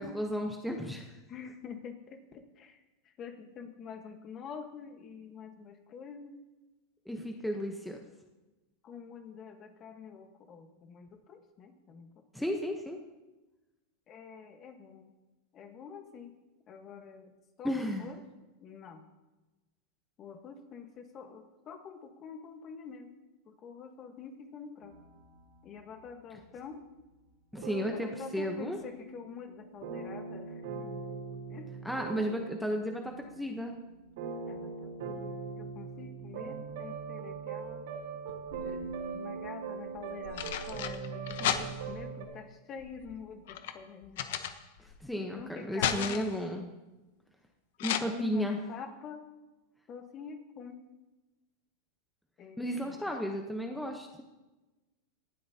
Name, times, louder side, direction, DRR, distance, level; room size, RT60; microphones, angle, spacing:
voice 1, 0.0-1.2 7.1-8.0 12.3-13.0 17.6-18.1 27.5-28.8 31.8-33.8 44.8-46.7 47.8-48.6 52.6-54.2, equal, ahead, 2 dB, 0.9 m, -34 dB
voice 2, 1.3-2.8 3.2-6.4 8.8-12.2 14.1-15.1 15.5-16.4 16.7-17.3 17.6-18.2 18.6-19.0 20.2-23.1 23.4-25.0 25.6-26.8 27.9-30.9 31.5-31.9 34.5-35.2 35.6-37.9 38.6-44.2 45.1-46.3 47.9-49.3 49.9-50.8 52.4-53.0, left 6 dB, 30° left, 6 dB, 1.3 m, -46 dB
sound 1, 24.8-26.3 27.6-42.2, right 5 dB, 75° right, 3.9 m, -41 dB
sound 2, 38.3-39.1 40.0-42.1 42.8-45.0 45.4-46.4 47.8-48.0, left 10 dB, 70° left, 0.9 m, -35 dB
18.5 x 12.0 x 2.8 m, 1.1 s
supercardioid pair, 155°, 0 cm